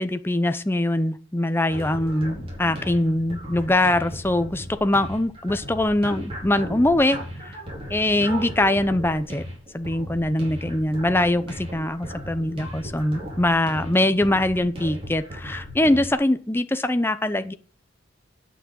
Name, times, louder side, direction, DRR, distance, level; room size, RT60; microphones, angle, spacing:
voice 1, 0.0-7.2 7.5-7.6 7.9-9.4 9.7-17.5, left 1 dB, 10° left, 10 dB, 0.7 m, -22 dB
sound 1, 1.7-16.1, equal, 25° right, 4.5 m, -36 dB
9.6 x 6.2 x 8.6 m, 0.41 s
head